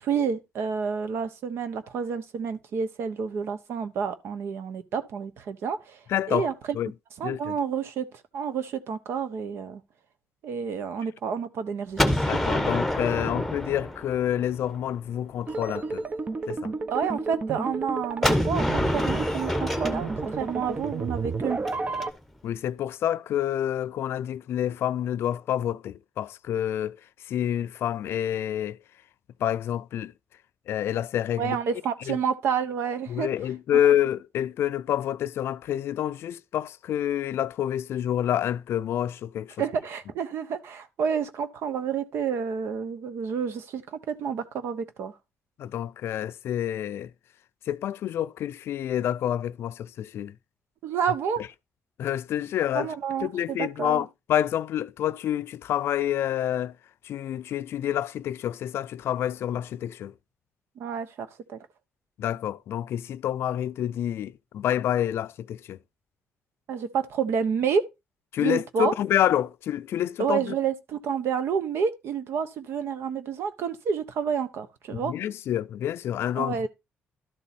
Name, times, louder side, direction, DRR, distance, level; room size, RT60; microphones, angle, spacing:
voice 1, 0.0-6.0 6.3-6.5 7.2-8.1 8.3-9.8 10.4-12.3 16.9-21.6 31.4-33.3 39.6-45.1 50.8-51.4 52.7-54.0 60.8-61.6 66.7-67.8 68.4-68.9 70.2-75.1 76.3-76.7, right 6 dB, 75° right, 1.1 m, -29 dB
voice 2, 6.1-6.5 6.7-6.9 7.2-7.6 12.2-16.1 16.5-16.7 22.4-27.0 27.3-28.8 29.4-30.1 30.7-31.6 32.1-32.2 33.1-39.6 45.6-47.1 47.7-50.3 52.0-52.9 53.2-56.7 57.0-60.1 62.2-65.8 68.3-70.5 74.9-76.7, left 11 dB, 70° left, 0.4 m, -28 dB
Gunshot gunfire, 12.0-14.8 18.2-22.0, left 1 dB, ahead, 1.1 m, -27 dB
sound 1, 15.5-22.1, right 3 dB, 35° right, 0.8 m, -32 dB
12.5 x 4.1 x 4.1 m
cardioid pair, 85°, 4 cm